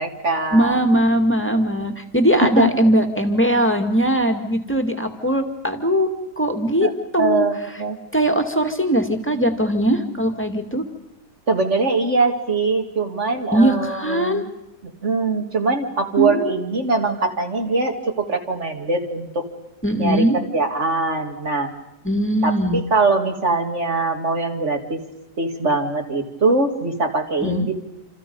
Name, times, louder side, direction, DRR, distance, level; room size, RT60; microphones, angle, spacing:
voice 1, 0.0-0.8 2.4-2.7 6.8-6.9 7.2-8.0 11.5-14.5 14.8-19.5 20.0-21.7 22.4-25.0 25.4-27.8, right 3 dB, 40° right, 3 dB, 2.5 m, -22 dB
voice 2, 0.5-6.1 6.4-6.9 7.1-7.5 8.1-10.8 13.5-14.4 16.2-16.6 19.8-20.4 22.0-22.8 27.4-27.7, right 1 dB, 5° left, 4 dB, 2.0 m, -20 dB
28.0 x 27.5 x 5.4 m, 0.92 s
omnidirectional pair, 1.8 m